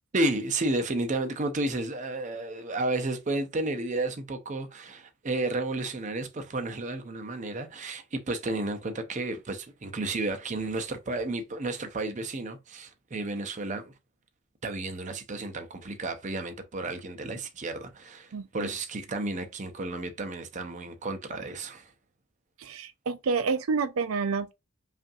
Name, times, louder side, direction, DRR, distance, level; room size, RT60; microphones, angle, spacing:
voice 1, 0.1-13.9 14.6-21.9, right 2 dB, 35° right, 0.6 m, -32 dB
voice 2, 18.3-18.7 22.6-24.5, right 4 dB, 90° right, 0.5 m, -29 dB
5.3 x 2.5 x 2.6 m
head